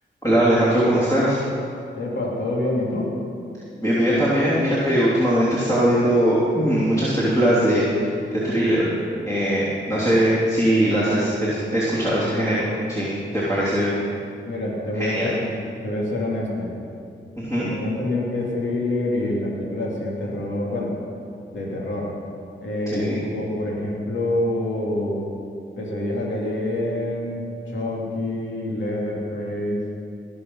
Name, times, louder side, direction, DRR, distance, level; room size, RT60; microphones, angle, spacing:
voice 1, 0.2-1.4 3.8-8.1 8.4-8.9 9.3-12.6 12.9-13.9 14.9-15.3 17.4-17.7 22.9-23.2, equal, 15° left, -10 dB, 3.3 m, -20 dB
voice 2, 2.0-3.1 14.5-15.5 15.8-16.7 17.7-21.0 21.5-22.1 22.6-25.3 25.8-29.8, left 1 dB, 75° left, -4 dB, 2.8 m, -26 dB
18.5 x 7.0 x 5.6 m, 2.4 s
cardioid pair, 60°, 20 cm